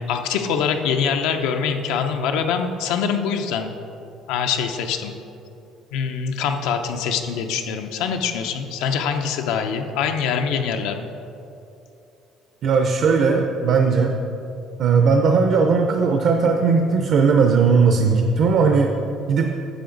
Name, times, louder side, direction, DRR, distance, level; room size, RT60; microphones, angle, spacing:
voice 1, 0.0-3.7 4.3-5.1 5.9-11.1, left 6 dB, 90° left, 5 dB, 0.6 m, -24 dB
voice 2, 12.6-14.1 14.8-18.9 19.3-19.5, right 5 dB, 50° right, 4 dB, 0.5 m, -17 dB
10.0 x 7.0 x 3.9 m, 2.8 s
cardioid pair, 160°, 0 cm